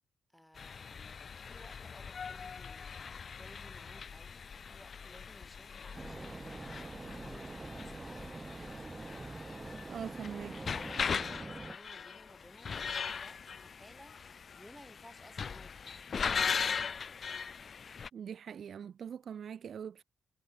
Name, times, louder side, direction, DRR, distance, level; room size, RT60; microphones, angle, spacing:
voice 1, 0.3-2.9 3.3-8.4 10.3-16.3, equal, 5° left, 4.8 m, -58 dB
sound 1, 0.6-18.1, left 6 dB, 50° left, 0.8 m, -40 dB
sound 2, 5.9-11.8, right 2 dB, 25° right, 1.7 m, -45 dB
voice 2, 9.9-10.5 18.1-20.0, right 8 dB, 60° right, 1.1 m, -42 dB
hypercardioid pair, 50°, 0 cm